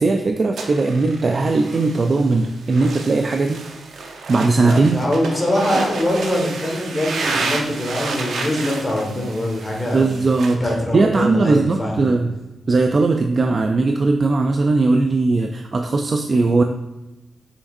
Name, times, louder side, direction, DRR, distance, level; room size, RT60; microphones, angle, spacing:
voice 1, 0.0-3.7 4.3-5.0 9.9-12.4 12.7-16.6, right 3 dB, 35° right, 4 dB, 0.3 m, -18 dB
sound 1, 0.6-10.5, right 3 dB, 75° right, 0.8 m, -30 dB
voice 2, 4.6-10.0 10.6-12.1, left 1 dB, 15° left, -1 dB, 1.5 m, -23 dB
6.6 x 5.9 x 2.5 m, 1.0 s
wide cardioid pair, 155°, 0 cm